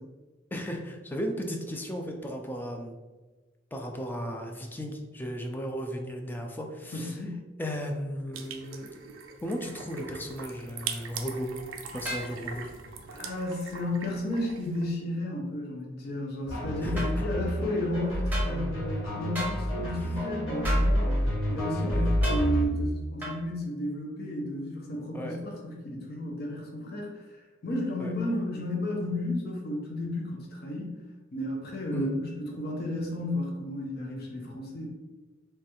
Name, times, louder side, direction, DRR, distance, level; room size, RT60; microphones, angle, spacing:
voice 1, 0.5-3.0 3.7-7.1 7.6-8.9 9.4-11.5 11.9-12.7 16.8-17.2 19.9-20.0 21.7-22.0 25.1-25.4 28.0-28.1 31.9-32.1, equal, 10° left, 2 dB, 0.3 m, -35 dB
voice 2, 6.9-7.4 13.1-21.1 21.5-31.0 31.3-34.9, left 1 dB, 50° left, -1 dB, 0.6 m, -33 dB
sound 1, 8.3-14.9, right 6 dB, 75° right, 0.4 m, -41 dB
sound 2, 12.0-12.3 17.0-17.1 18.3-18.5 19.3-19.6 20.6-20.9 22.2-22.4 23.2-23.4, equal, 10° right, 0.7 m, -34 dB
sound 3, 16.5-22.7, equal, 80° left, 1.1 m, -28 dB
3.2 x 2.3 x 2.9 m, 1.2 s
head